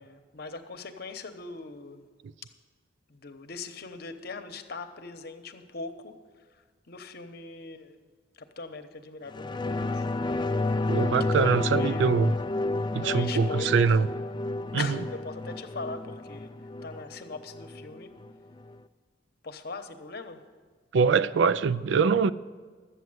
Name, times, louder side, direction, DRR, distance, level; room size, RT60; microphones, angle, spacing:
voice 1, 0.0-2.1 2.4-2.5 3.1-8.0 8.3-10.1 11.2-12.2 13.0-14.0 14.8-16.5 16.8-18.1 19.4-20.4, left 4 dB, 60° left, 0.9 m, -41 dB
sound 1, 9.3-18.3 18.7-18.8, left 2 dB, 25° left, 0.3 m, -31 dB
voice 2, 10.9-12.3 12.9-14.1 14.7-14.9 20.9-22.3, right 5 dB, 80° right, 0.4 m, -23 dB
12.0 x 8.1 x 7.8 m
head